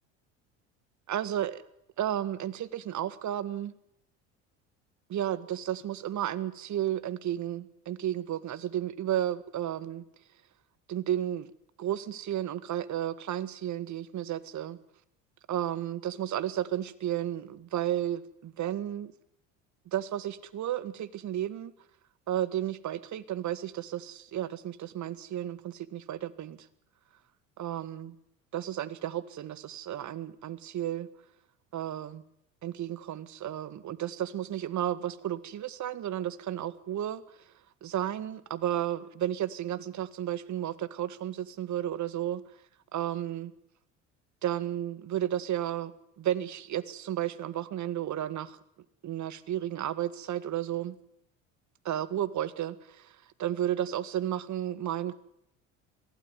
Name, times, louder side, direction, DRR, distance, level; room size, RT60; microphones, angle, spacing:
voice 1, 1.1-1.6 2.0-3.7 5.1-10.0 10.9-11.5 11.8-14.8 15.5-19.1 19.9-21.7 22.3-26.7 27.6-28.1 28.5-31.1 31.7-32.2 32.6-37.5 37.8-42.4 42.9-43.5 44.4-48.6 49.0-51.0 51.8-55.1, right 11 dB, 50° right, 16 dB, 1.9 m, -33 dB
22.5 x 16.5 x 9.8 m, 0.75 s
hypercardioid pair, 70°, 38 cm